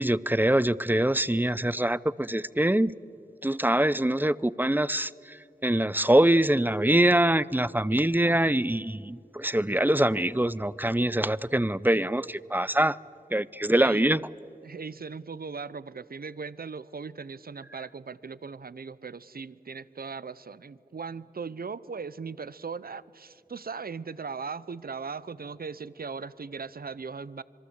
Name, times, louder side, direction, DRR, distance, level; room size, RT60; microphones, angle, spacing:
voice 1, 0.0-2.9 3.4-5.4 5.6-13.0 13.3-14.2, right 1 dB, 10° right, 19 dB, 0.6 m, -24 dB
voice 2, 13.8-14.2 14.6-27.4, right 5 dB, 70° right, 18 dB, 0.7 m, -38 dB
26.5 x 22.5 x 8.1 m, 2.6 s
wide cardioid pair, 45°, 16 cm